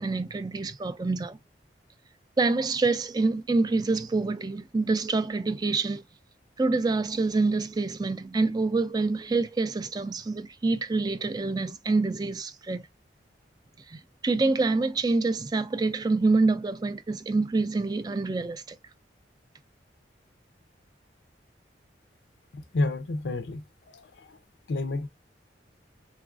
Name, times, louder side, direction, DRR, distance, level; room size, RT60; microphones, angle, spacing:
voice 1, 0.0-1.4 2.4-6.0 6.6-12.8 13.9-18.8, right 3 dB, 20° right, 0.3 m, -26 dB
voice 2, 22.7-24.4 24.7-25.1, left 2 dB, 85° left, 0.5 m, -30 dB
3.9 x 2.4 x 2.4 m
head